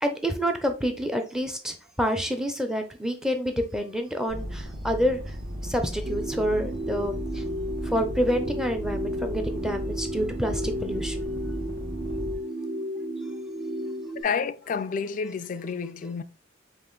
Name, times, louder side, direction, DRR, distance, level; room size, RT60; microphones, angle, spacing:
voice 1, 0.0-5.3 5.6-7.4 7.8-11.2, equal, 5° right, 0.6 m, -28 dB
sound 1, 4.3-12.4, equal, 60° right, 1.4 m, -36 dB
sound 2, 6.0-14.2, equal, 40° right, 0.7 m, -33 dB
voice 2, 14.2-16.2, left 6 dB, 45° left, 0.3 m, -29 dB
5.3 x 2.5 x 3.8 m
head